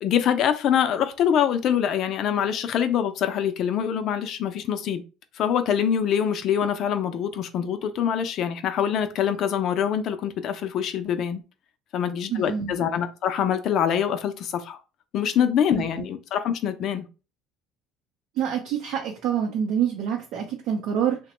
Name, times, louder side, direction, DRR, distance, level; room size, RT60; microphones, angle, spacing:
voice 1, 0.0-5.0 5.4-11.4 11.9-14.8 15.1-17.1, left 8 dB, 50° left, 0.4 m, -24 dB
voice 2, 12.3-12.7 16.0-16.1 18.4-21.2, right 8 dB, 70° right, 0.6 m, -26 dB
2.9 x 2.1 x 2.9 m
cardioid pair, 130°, 0 cm